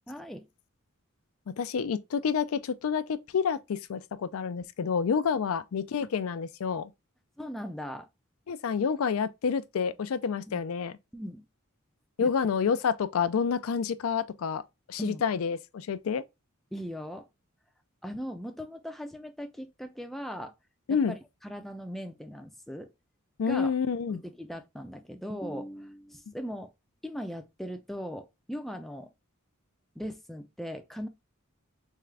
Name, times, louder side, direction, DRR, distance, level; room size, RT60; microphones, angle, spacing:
voice 1, 0.1-0.5 7.4-8.1 10.5-10.6 11.1-11.4 12.2-12.3 15.0-15.2 16.7-17.3 18.0-20.5 20.9-21.2 21.4-22.9 23.5-23.7 24.1-26.7 27.0-29.1 30.0-31.1, equal, ahead, 0.4 m, -39 dB
voice 2, 1.6-6.9 8.5-10.9 12.2-14.6 14.9-16.2 20.9-21.1 23.4-24.2, left 6 dB, 80° left, 0.4 m, -28 dB
3.7 x 3.3 x 3.2 m
head